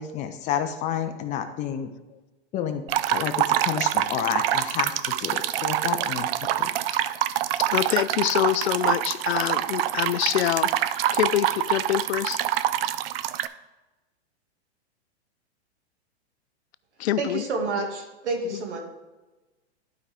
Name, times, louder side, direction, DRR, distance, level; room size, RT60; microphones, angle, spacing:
voice 1, 0.0-1.9 2.5-6.3 6.6-6.7, left 9 dB, 20° left, 8 dB, 0.5 m, -30 dB
sound 1, 2.9-13.5, right 12 dB, 60° right, 0.5 m, -26 dB
voice 2, 7.6-12.4 17.0-17.4 18.5-18.6, left 13 dB, 70° left, 16 dB, 0.5 m, -26 dB
voice 3, 17.2-18.8, right 3 dB, 85° right, 2 dB, 2.1 m, -29 dB
12.0 x 5.0 x 3.5 m, 1.1 s
hypercardioid pair, 135°, 33 cm